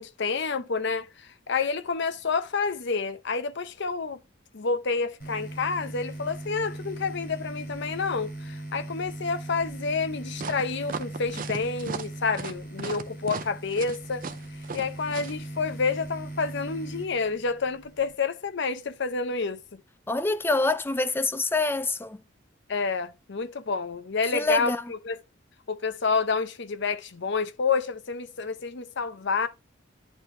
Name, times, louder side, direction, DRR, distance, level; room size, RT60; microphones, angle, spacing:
voice 1, 0.0-4.2 4.5-14.3 14.7-19.8 22.7-25.2 25.7-29.5, left 4 dB, 60° left, 0.7 m, -29 dB
sound 1, 5.2-18.1, right 1 dB, 45° left, 4.0 m, -39 dB
sound 2, 10.4-15.3, right 4 dB, 45° right, 0.6 m, -36 dB
voice 2, 20.1-22.2 24.3-24.8, left 2 dB, 10° left, 0.3 m, -26 dB
10.0 x 4.4 x 2.7 m
head